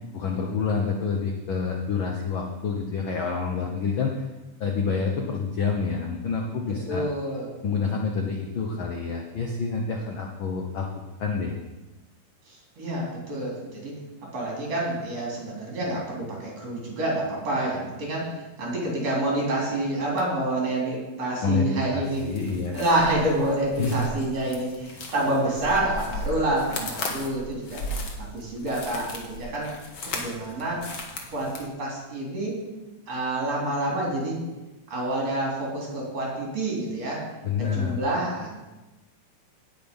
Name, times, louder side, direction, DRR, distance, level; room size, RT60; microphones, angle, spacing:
voice 1, 0.1-4.2 4.6-7.0 7.6-10.9 11.2-11.6 21.4-22.7 23.8-24.0 37.4-38.0, left 5 dB, 80° left, 1 dB, 1.1 m, -28 dB
voice 2, 6.6-7.5 12.5-14.0 14.3-18.3 18.6-22.3 22.7-27.8 28.2-29.7 30.0-30.8 31.3-32.6 33.1-34.4 34.9-37.2 37.6-38.5, right 1 dB, 50° right, -3 dB, 4.6 m, -28 dB
sound 1, 22.0-31.7, left 1 dB, 45° left, 1.4 m, -37 dB
17.5 x 6.0 x 5.4 m, 1.1 s
omnidirectional pair, 3.8 m